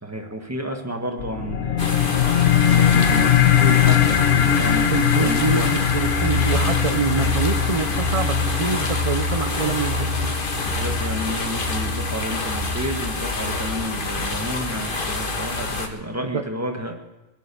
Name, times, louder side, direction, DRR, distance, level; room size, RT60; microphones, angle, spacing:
voice 1, 0.0-2.3 2.5-5.7 10.6-17.0, equal, 15° right, 3 dB, 1.7 m, -31 dB
sound 1, 1.2-12.2, left 10 dB, 85° left, 1.1 m, -21 dB
sound 2, 1.8-15.9, left 3 dB, 55° left, 1.7 m, -27 dB
voice 2, 4.9-10.4 16.2-16.4, right 5 dB, 35° right, 7 dB, 0.8 m, -26 dB
sound 3, 5.9-13.7, left 1 dB, 65° right, 3.1 m, -28 dB
20.0 x 10.5 x 6.9 m, 1.1 s
omnidirectional pair, 1.0 m